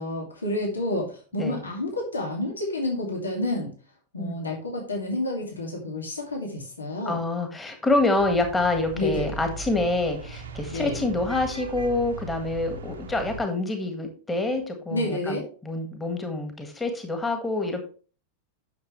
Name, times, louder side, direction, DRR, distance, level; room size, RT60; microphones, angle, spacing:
voice 1, 0.0-3.7 4.1-7.2 8.9-9.3 10.7-11.0 14.9-15.5, left 1 dB, 75° left, 0 dB, 2.3 m, -29 dB
voice 2, 7.1-17.8, left 2 dB, 10° left, 5 dB, 1.8 m, -27 dB
sound 1, 8.2-13.4, right 3 dB, 65° right, 1.3 m, -38 dB
9.7 x 6.8 x 3.2 m, 0.38 s
figure-of-eight pair, 90°, 0 cm